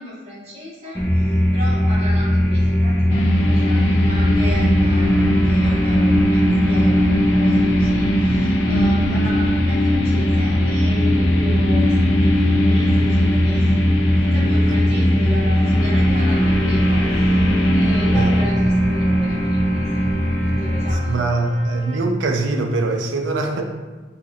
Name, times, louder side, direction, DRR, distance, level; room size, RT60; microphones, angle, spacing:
voice 1, 0.0-20.0 20.4-21.3, equal, 35° right, -9 dB, 1.1 m, -35 dB
sound 1, 0.9-20.9, equal, 10° left, 0.4 m, -19 dB
sound 2, 3.1-18.4, left 1 dB, 80° left, 0.4 m, -23 dB
Trumpet, 16.0-22.1, equal, 50° left, 1.2 m, -39 dB
voice 2, 21.1-23.6, right 2 dB, 80° right, 3 dB, 0.4 m, -22 dB
4.0 x 2.8 x 2.4 m, 1.3 s
head